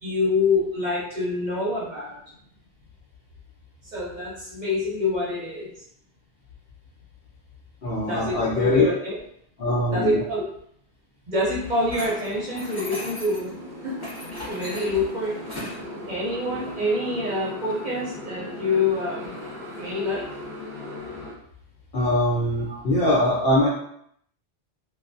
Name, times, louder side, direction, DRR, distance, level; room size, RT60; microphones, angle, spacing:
voice 1, 0.0-2.1 3.8-5.7 8.1-9.2 9.9-10.4 11.3-13.5 13.8-14.1 14.5-15.3 16.1-19.3 19.8-20.3 22.7-22.8, left 2 dB, 50° right, -5 dB, 0.7 m, -26 dB
voice 2, 7.8-8.9 9.6-10.2 21.9-23.7, left 1 dB, 65° left, -6 dB, 0.8 m, -22 dB
Motorcycle, 11.6-21.3, left 1 dB, 10° right, 1.3 m, -38 dB
sound 1, 11.9-13.5 14.0-15.8, left 1 dB, 25° left, 1.4 m, -37 dB
3.2 x 2.1 x 2.5 m, 0.67 s
omnidirectional pair, 1.2 m